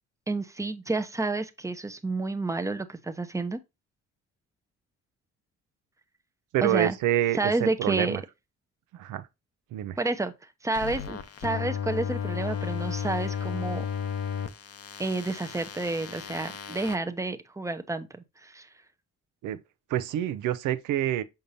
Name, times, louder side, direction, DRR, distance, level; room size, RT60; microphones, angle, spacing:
voice 1, 0.3-3.6 6.6-6.9 7.4-8.2 10.0-10.3 10.6-13.9 15.0-18.7, right 3 dB, 10° right, 0.8 m, -30 dB
voice 2, 6.5-8.2 8.9-9.3 9.7-10.0 16.7-16.8 19.4-19.6 19.9-21.2, right 12 dB, 85° right, 0.7 m, -27 dB
sound 1, 10.7-17.0, left 8 dB, 50° left, 0.8 m, -34 dB
6.6 x 5.3 x 2.7 m
cardioid pair, 90°, 30 cm